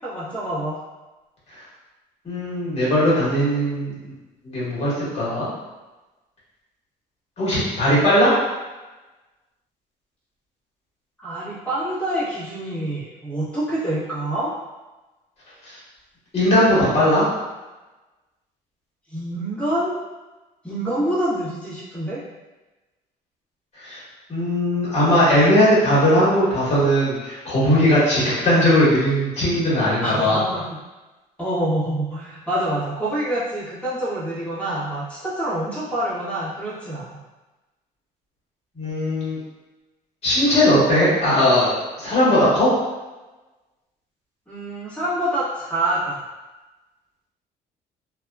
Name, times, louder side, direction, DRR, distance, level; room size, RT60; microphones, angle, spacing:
voice 1, 0.0-0.7 11.2-14.5 19.1-19.9 20.6-22.2 30.0-30.6 31.4-37.2 44.5-46.2, right 1 dB, 5° left, -10 dB, 1.2 m, -26 dB
voice 2, 2.2-4.1 4.4-5.5 7.4-8.3 15.6-15.7 16.3-17.2 23.8-24.0 24.3-30.4 38.8-39.4 40.2-42.7, equal, 40° left, -8 dB, 1.4 m, -19 dB
2.7 x 2.3 x 2.3 m, 1.1 s
cardioid pair, 110°, 17 cm